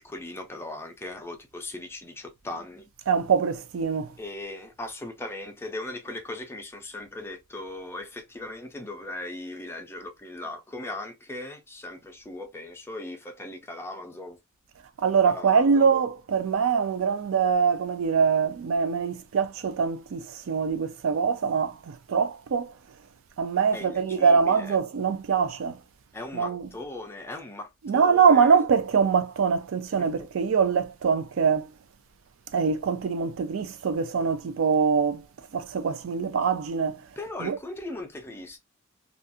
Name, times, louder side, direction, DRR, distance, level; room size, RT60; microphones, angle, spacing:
voice 1, 0.0-2.8 4.2-14.4 15.3-15.9 23.7-24.8 26.1-28.5 30.0-30.1 37.2-38.6, left 2 dB, 10° left, 0.5 m, -38 dB
voice 2, 3.1-4.1 15.0-22.7 23.4-25.8 26.3-26.7 27.8-31.7 32.5-35.2 35.5-37.0 37.4-37.6, right 6 dB, 70° right, 0.4 m, -23 dB
2.5 x 2.4 x 2.6 m
head